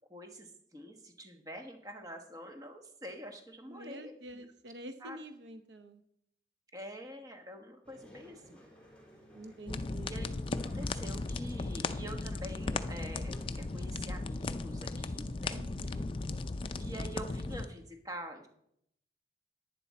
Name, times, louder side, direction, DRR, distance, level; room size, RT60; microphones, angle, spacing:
voice 1, 0.1-4.4 5.0-5.2 6.7-8.6 10.1-10.3 10.6-15.6 16.8-18.5, equal, 20° right, 4 dB, 1.1 m, -46 dB
voice 2, 3.7-6.0 9.3-10.1 15.5-16.1, right 1 dB, 75° right, 9 dB, 0.8 m, -47 dB
sound 1, 7.8-14.0, equal, 5° left, 3.9 m, -57 dB
sound 2, 9.7-17.7, left 3 dB, 30° left, 0.4 m, -36 dB
11.0 x 9.9 x 4.2 m, 0.74 s
head